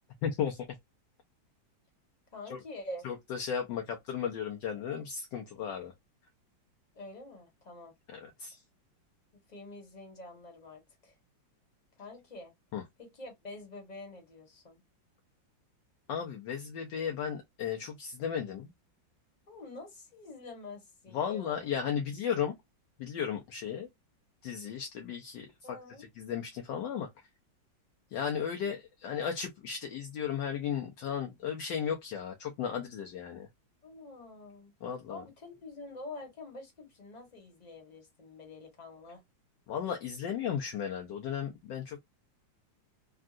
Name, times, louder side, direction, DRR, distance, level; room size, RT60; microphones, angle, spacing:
voice 1, 0.2-0.6 2.5-2.6 3.0-5.9 8.1-8.6 12.7-12.8 16.1-18.7 21.1-22.5 23.0-23.9 24.4-27.1 28.1-33.5 34.8-35.2 39.7-42.0, left 8 dB, 75° left, 1.2 m, -35 dB
voice 2, 2.3-3.1 6.9-7.9 9.3-11.2 12.0-12.5 13.0-14.8 19.5-21.6 25.6-26.1 33.8-34.7 35.1-39.2, left 2 dB, 25° left, 1.0 m, -47 dB
3.6 x 2.3 x 2.4 m
omnidirectional pair, 2.1 m